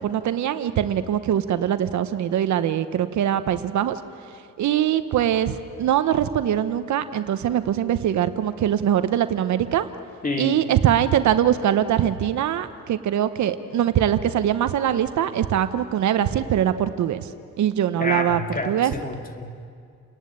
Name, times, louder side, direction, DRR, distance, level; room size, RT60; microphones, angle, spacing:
voice 1, 0.0-4.0 4.6-9.9 10.4-17.3 17.6-18.4 18.6-18.9, right 10 dB, 70° right, 11 dB, 1.0 m, -22 dB
voice 2, 10.2-10.6 18.0-19.7, left 2 dB, 30° left, 3 dB, 2.4 m, -29 dB
29.0 x 11.0 x 8.8 m, 2.2 s
cardioid pair, 90°, 30 cm